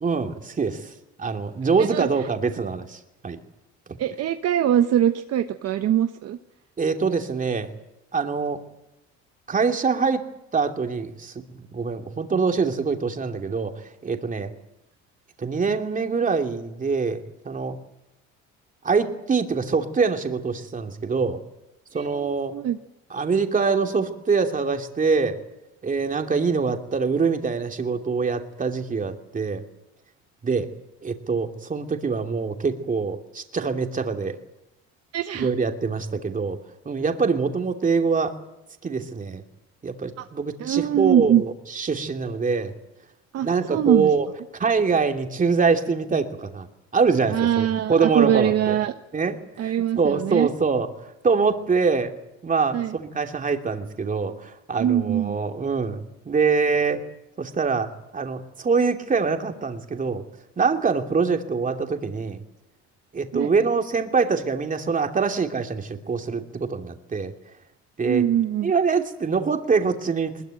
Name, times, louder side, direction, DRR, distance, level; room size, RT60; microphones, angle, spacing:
voice 1, 0.0-0.9 1.2-3.4 3.9-4.0 6.8-7.7 8.1-8.6 9.5-10.2 10.5-11.3 11.7-13.7 14.0-14.5 15.4-17.2 17.4-17.8 18.8-21.4 21.9-22.5 23.1-25.4 25.8-29.6 30.4-30.7 31.0-34.4 35.3-36.6 36.8-38.3 38.8-39.4 39.8-42.7 43.4-44.3 44.6-46.7 46.9-48.8 49.1-52.1 52.4-57.0 57.4-60.2 60.6-62.4 63.1-67.3 68.0-68.3 68.6-70.5, right 5 dB, 25° right, 4 dB, 2.8 m, -24 dB
voice 2, 4.0-6.4 21.9-22.8 35.1-35.5 40.2-40.3 40.6-41.4 43.3-44.1 47.3-48.9 49.6-50.5 52.7-53.0 54.8-55.4 63.3-63.5 68.0-68.7, right 10 dB, 55° right, 7 dB, 1.2 m, -22 dB
21.5 x 21.5 x 9.1 m, 0.88 s
cardioid pair, 110°, 30 cm